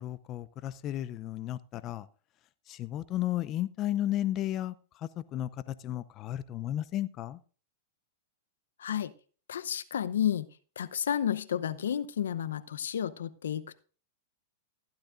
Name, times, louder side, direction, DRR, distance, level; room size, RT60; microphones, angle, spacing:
voice 1, 0.0-2.1 2.7-7.4, left 13 dB, 35° left, 16 dB, 0.6 m, -34 dB
voice 2, 8.8-9.1 9.5-10.5 10.8-13.8, left 9 dB, 80° left, 14 dB, 0.7 m, -31 dB
15.5 x 11.5 x 2.5 m, 0.39 s
hypercardioid pair, 115°, 0 cm